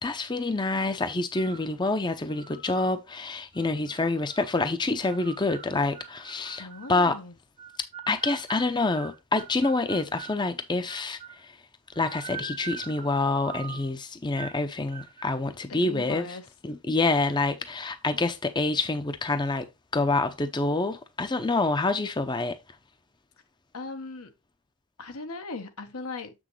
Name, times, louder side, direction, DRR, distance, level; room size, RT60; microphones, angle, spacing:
voice 1, 0.0-7.2 8.1-11.6 12.0-16.4 16.6-19.7 19.9-22.6, left 3 dB, 20° left, 0.6 m, -27 dB
sound 1, 1.3-1.7 2.3-2.9 3.5-4.5 5.1-7.0 7.6-10.4 10.9-11.5 11.9-13.9 14.4-14.6 14.9-15.3, right 6 dB, 30° right, 0.7 m, -43 dB
voice 2, 6.6-7.3 15.7-16.5 23.7-24.3 25.0-26.3, left 3 dB, 85° left, 1.2 m, -38 dB
7.3 x 6.1 x 3.1 m
head